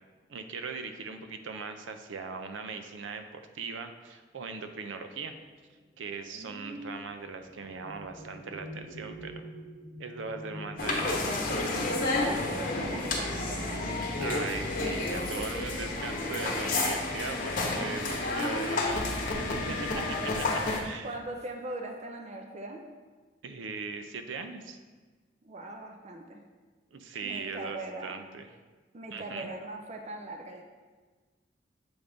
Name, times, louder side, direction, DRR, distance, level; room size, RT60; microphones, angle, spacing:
voice 1, 0.3-5.4 6.0-9.4 10.0-11.2 14.2-19.1 19.7-19.8 20.4-21.1 23.4-24.8 26.9-28.5 29.1-29.5, right 4 dB, 90° right, 7 dB, 0.5 m, -39 dB
sound 1, 5.6-13.9 14.9-15.0 15.4-15.9, equal, 5° right, 1.0 m, -48 dB
voice 2, 6.3-6.9 12.1-14.0 19.6-20.2 21.0-22.8 25.4-26.4 27.2-28.2 28.9-30.6, right 2 dB, 40° right, 3 dB, 0.5 m, -41 dB
sound 2, 10.8-20.8, left 2 dB, 45° left, 0.9 m, -30 dB
sound 3, 16.4-20.7, left 7 dB, 75° left, 0.4 m, -44 dB
7.0 x 3.5 x 3.8 m, 1.4 s
head